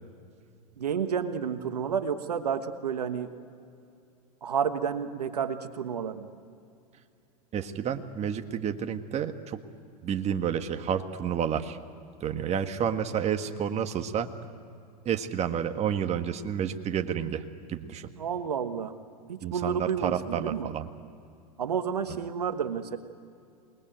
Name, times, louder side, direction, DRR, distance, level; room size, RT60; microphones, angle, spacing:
voice 1, 0.8-3.3 4.4-6.3 18.2-18.9 19.3-20.7 21.6-23.0, right 7 dB, 90° right, 9 dB, 1.4 m, -30 dB
voice 2, 7.5-9.6 10.0-11.8 12.2-14.3 15.1-17.4 17.7-18.1 19.4-20.9 22.1-22.2, right 8 dB, 35° right, 7 dB, 1.6 m, -30 dB
27.5 x 20.5 x 9.2 m, 2.5 s
hypercardioid pair, 95°, 20 cm